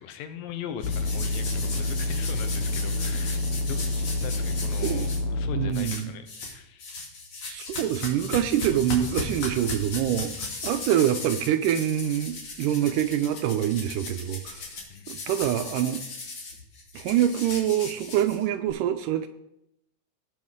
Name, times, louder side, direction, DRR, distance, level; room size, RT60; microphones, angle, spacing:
voice 1, 0.0-6.9 14.9-15.3, left 8 dB, 85° left, 9 dB, 2.6 m, -40 dB
sound 1, 0.8-5.7, left 2 dB, 70° left, 1.9 m, -28 dB
sound 2, 0.8-5.2 5.7-6.5 6.8-18.7, left 3 dB, 45° left, 2.5 m, -37 dB
voice 2, 5.6-6.1 7.5-14.7 15.1-16.0 16.9-19.3, right 11 dB, 80° right, 9 dB, 2.0 m, -25 dB
18.0 x 6.3 x 3.7 m, 0.81 s
omnidirectional pair, 4.0 m